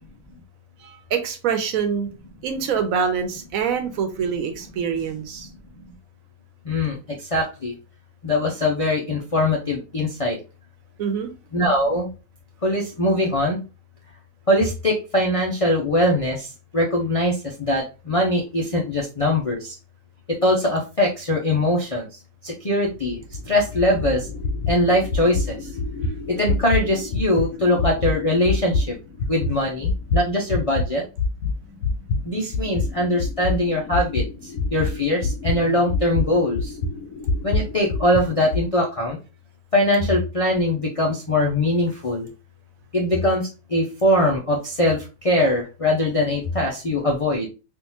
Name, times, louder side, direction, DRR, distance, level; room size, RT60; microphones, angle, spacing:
voice 1, 0.8-2.1 2.4-5.5 11.0-11.3 35.6-35.7, right 6 dB, 75° right, 7 dB, 1.1 m, -25 dB
voice 2, 6.7-7.0 7.3-7.7 8.2-10.4 11.5-12.1 12.6-13.6 14.5-16.5 16.7-19.7 20.4-22.0 22.4-23.2 23.5-24.3 24.7-25.6 26.4-28.8 29.3-31.0 32.2-34.2 34.7-36.7 37.4-39.2 39.7-42.3 42.9-47.5, left 1 dB, 50° left, -1 dB, 0.4 m, -22 dB
sound 1, 22.9-30.9 31.2-38.7, left 3 dB, 75° left, 1.1 m, -26 dB
3.5 x 2.5 x 2.9 m, 0.30 s
omnidirectional pair, 1.5 m